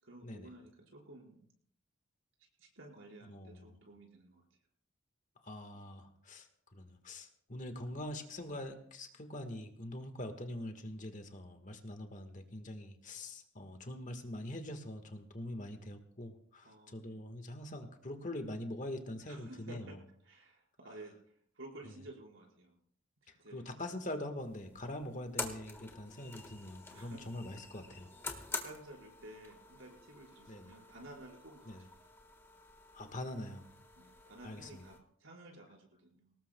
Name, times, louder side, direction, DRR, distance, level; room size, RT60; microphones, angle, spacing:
voice 1, 0.0-1.5 2.6-4.5 5.7-5.8 16.6-17.2 19.3-21.2 21.5-22.8 23.2-23.8 26.9-27.3 28.4-32.0 34.0-36.4, right 1 dB, 85° right, 0 dB, 4.8 m, -53 dB
voice 2, 3.3-3.8 5.4-6.5 6.7-20.0 23.5-28.1 30.5-30.7 31.7-31.8 32.9-33.6 34.4-34.8, left 1 dB, 40° left, 6 dB, 1.5 m, -44 dB
sound 1, 24.4-35.0, left 3 dB, 10° left, 1.4 m, -47 dB
23.5 x 18.5 x 2.2 m, 0.63 s
head